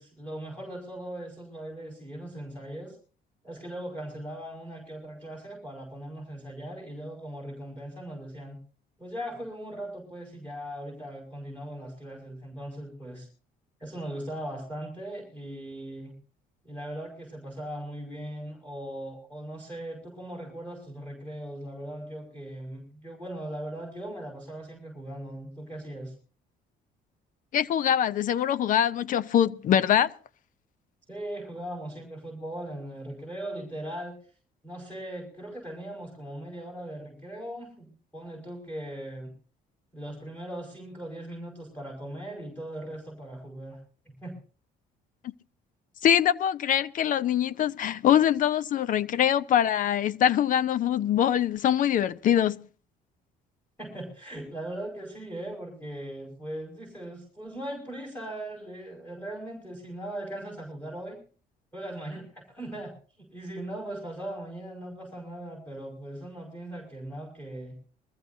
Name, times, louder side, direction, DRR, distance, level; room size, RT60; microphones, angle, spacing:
voice 1, 0.0-3.0 3.4-8.6 9.0-13.3 13.8-16.1 16.6-26.1 31.1-34.2 34.6-39.3 39.9-43.8 44.1-44.3 53.8-61.2 61.7-62.9 63.2-67.8, right 1 dB, 10° left, 5.7 m, -39 dB
voice 2, 27.5-30.1 46.0-52.6, left 10 dB, 50° left, 0.6 m, -23 dB
22.5 x 14.5 x 2.7 m
cardioid pair, 110°, 17 cm